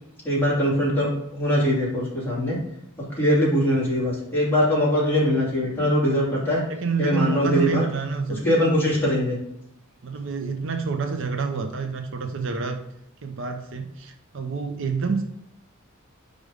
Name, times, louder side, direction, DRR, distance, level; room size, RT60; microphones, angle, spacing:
voice 1, 0.2-2.6 3.2-6.6 7.0-7.8 8.4-9.4, equal, 10° left, -7 dB, 2.7 m, -22 dB
voice 2, 6.5-8.4 10.0-12.8 13.2-15.2, right 5 dB, 65° right, 5 dB, 0.7 m, -28 dB
5.3 x 4.9 x 5.0 m, 0.79 s
head